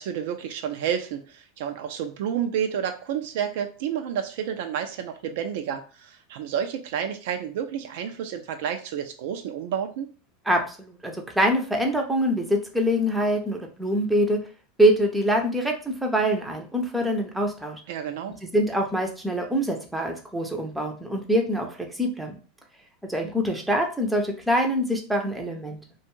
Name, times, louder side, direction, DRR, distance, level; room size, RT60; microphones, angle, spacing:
voice 1, 0.0-10.1 17.9-18.4, right 8 dB, 70° right, 7 dB, 0.4 m, -30 dB
voice 2, 10.5-14.4 14.8-17.8 18.5-22.4 23.1-25.8, equal, 5° right, 2 dB, 0.5 m, -24 dB
2.5 x 2.3 x 3.0 m, 0.38 s
supercardioid pair, 125°, 0 cm